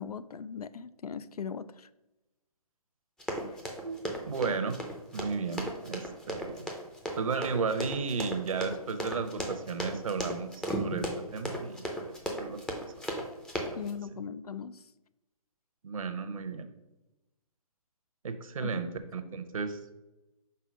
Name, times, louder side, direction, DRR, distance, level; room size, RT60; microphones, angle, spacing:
voice 1, 0.0-1.9 3.4-3.6 13.8-14.8 18.6-18.7, left 6 dB, 80° left, 15 dB, 0.4 m, -39 dB
Run, 3.2-13.9, equal, 5° left, 0.5 m, -36 dB
voice 2, 3.8-4.8 5.1-6.6 7.2-12.1 12.4-12.6 15.8-16.7 18.2-19.9, right 5 dB, 65° right, 9 dB, 0.9 m, -34 dB
5.6 x 4.2 x 5.2 m, 0.99 s
figure-of-eight pair, 135°, 19 cm